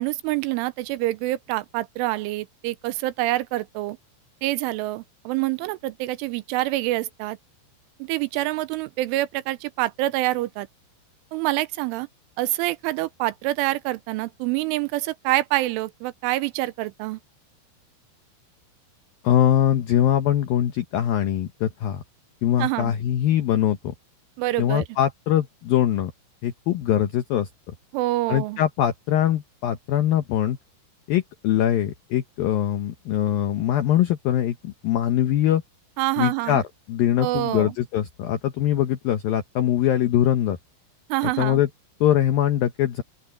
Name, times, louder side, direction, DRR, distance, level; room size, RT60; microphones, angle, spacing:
voice 1, 0.0-4.0 4.4-7.4 8.0-10.7 11.3-12.1 12.4-17.2 22.6-22.9 24.4-24.8 27.9-28.6 36.0-36.6 37.2-37.7 41.1-41.6, right 18 dB, 85° right, 3.1 m, -26 dB
voice 2, 19.2-22.0 22.4-23.8 24.6-26.1 26.4-27.5 28.3-30.6 31.1-35.6 36.2-36.6 36.9-40.6 41.4-41.7 42.0-43.0, left 11 dB, 90° left, 2.0 m, -22 dB
open air
omnidirectional pair, 5.8 m